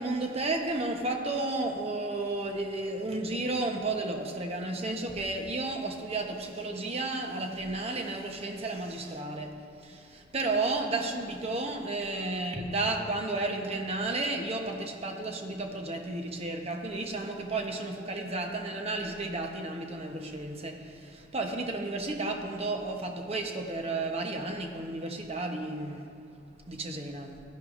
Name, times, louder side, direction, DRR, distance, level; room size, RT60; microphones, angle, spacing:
voice 1, 0.0-26.1 26.7-27.3, right 2 dB, 35° right, 3 dB, 1.0 m, -32 dB
14.0 x 11.0 x 2.6 m, 2.5 s
head